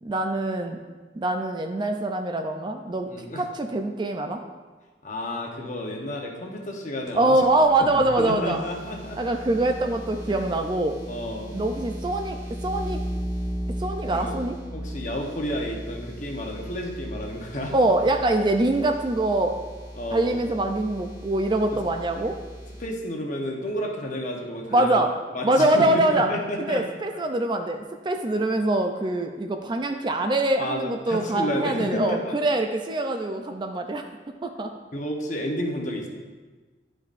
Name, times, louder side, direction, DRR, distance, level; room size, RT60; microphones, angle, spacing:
voice 1, 0.0-0.8 1.2-3.1 3.4-4.4 7.1-8.6 9.2-10.9 11.5-12.4 12.6-13.0 13.8-14.6 17.7-19.6 20.1-22.4 24.7-25.1 25.4-26.3 26.6-34.0 34.4-34.7, right 2 dB, 25° right, 5 dB, 0.4 m, -24 dB
voice 2, 3.1-3.4 5.0-7.4 7.8-9.2 10.3-10.5 11.1-11.5 14.1-14.3 14.7-17.7 20.0-20.4 21.7-21.8 22.8-25.0 25.3-26.8 30.6-32.3 34.9-36.1, left 1 dB, 45° left, 0 dB, 1.0 m, -31 dB
sound 1, 7.1-22.9, equal, 20° left, 1.3 m, -37 dB
11.5 x 5.2 x 2.5 m, 1.4 s
head